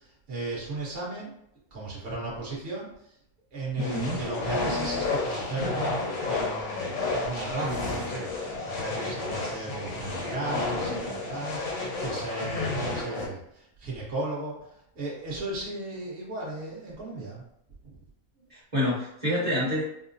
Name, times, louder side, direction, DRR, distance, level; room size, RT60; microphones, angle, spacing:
voice 1, 0.3-1.3 1.7-2.9 3.5-14.6 14.9-17.4 17.8-17.9, right 2 dB, 45° right, -5 dB, 1.3 m, -36 dB
sound 1, 3.8-13.3, left 3 dB, 70° left, 1.4 m, -31 dB
voice 2, 3.8-4.2 18.5-19.8, left 1 dB, 25° right, -8 dB, 1.1 m, -27 dB
4.7 x 2.1 x 2.6 m, 0.76 s
omnidirectional pair, 1.5 m